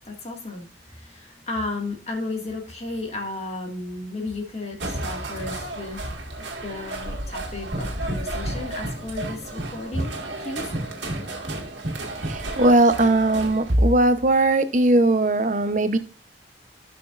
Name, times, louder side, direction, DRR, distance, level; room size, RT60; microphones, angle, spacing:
voice 1, 0.1-0.7 1.0-6.0 6.4-10.1 10.4-10.6, left 2 dB, 35° left, 2.1 m, -33 dB
sound 1, 4.8-13.8, right 1 dB, 85° right, 1.9 m, -32 dB
voice 2, 12.2-16.0, right 2 dB, 45° right, 0.9 m, -19 dB
15.0 x 6.1 x 2.5 m
head